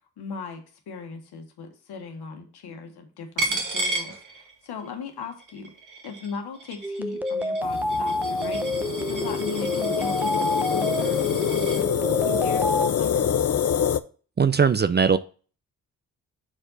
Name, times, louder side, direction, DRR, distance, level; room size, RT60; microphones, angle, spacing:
voice 1, 0.2-5.7 6.0-8.8 9.1-11.9 12.2-13.2, left 5 dB, 70° left, 5 dB, 1.5 m, -38 dB
Coin (dropping), 3.4-4.9 5.2-11.8, right 2 dB, 50° right, 1.9 m, -34 dB
sound 1, 6.8-12.9, left 1 dB, 5° right, 0.9 m, -28 dB
sound 2, 7.6-14.0, left 8 dB, 40° left, 0.6 m, -26 dB
voice 2, 14.4-15.2, right 6 dB, 25° right, 13 dB, 0.5 m, -19 dB
6.9 x 4.4 x 4.1 m, 0.38 s
hypercardioid pair, 40°, 40 cm